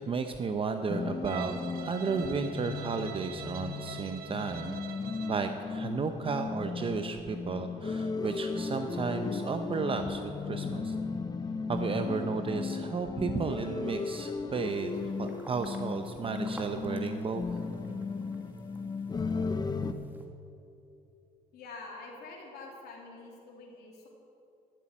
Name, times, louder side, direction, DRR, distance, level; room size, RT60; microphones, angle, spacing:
voice 1, 0.0-4.8 5.3-10.9 11.7-14.9 15.2-17.5, right 4 dB, 35° right, 7 dB, 0.7 m, -33 dB
sound 1, 0.9-19.9, left 4 dB, 25° left, 0.7 m, -36 dB
Bowed string instrument, 1.2-5.5, right 10 dB, 65° right, 1.0 m, -44 dB
sound 2, 14.6-20.3, right 1 dB, 10° right, 1.5 m, -51 dB
voice 2, 21.5-24.1, left 3 dB, 70° left, -1 dB, 3.1 m, -46 dB
13.0 x 7.2 x 9.0 m, 2.8 s
cardioid pair, 110°, 17 cm